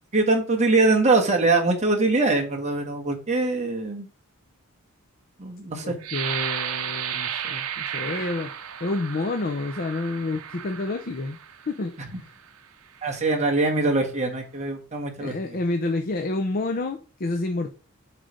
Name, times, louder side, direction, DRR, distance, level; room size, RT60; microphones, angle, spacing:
voice 1, 0.1-4.1 5.4-5.9 13.0-15.3, right 3 dB, 35° right, 1 dB, 1.5 m, -22 dB
voice 2, 5.8-8.5 8.8-11.4 11.7-11.9 12.2-12.3 15.2-17.7, left 2 dB, 45° left, 5 dB, 0.6 m, -29 dB
sound 1, 6.0-11.7 12.3-12.5 13.0-13.4, right 9 dB, 85° right, 0.7 m, -33 dB
7.5 x 3.3 x 5.1 m, 0.38 s
head